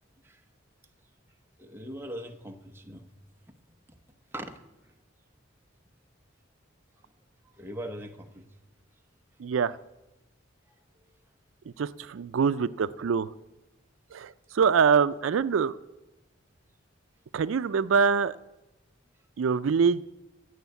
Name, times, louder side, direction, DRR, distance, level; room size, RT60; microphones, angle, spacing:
voice 1, 1.6-3.1 4.3-4.6 7.6-8.4, right 1 dB, 10° right, 4 dB, 1.0 m, -40 dB
voice 2, 9.4-9.8 11.8-13.3 14.1-15.8 17.3-18.4 19.4-20.0, right 6 dB, 85° right, 15 dB, 0.4 m, -24 dB
16.0 x 6.5 x 8.2 m, 0.98 s
head